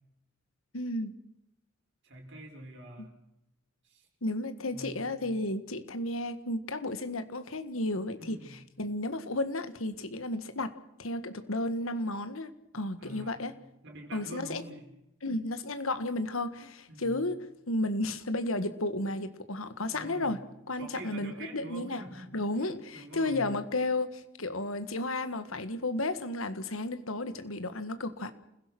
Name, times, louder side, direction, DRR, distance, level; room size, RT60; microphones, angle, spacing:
voice 1, 0.7-1.1 3.0-3.1 4.2-10.7 11.0-13.5 14.1-14.6 15.2-17.4 17.7-20.4 20.7-22.0 22.3-28.3, left 2 dB, 80° left, 11 dB, 1.8 m, -33 dB
voice 2, 2.0-3.2 3.8-4.1 4.7-5.3 8.2-8.6 13.0-13.5 13.8-14.9 16.9-17.2 19.9-20.4 20.8-22.7 22.9-23.5, right 1 dB, 60° right, 1 dB, 5.9 m, -46 dB
29.0 x 16.5 x 6.2 m, 0.86 s
head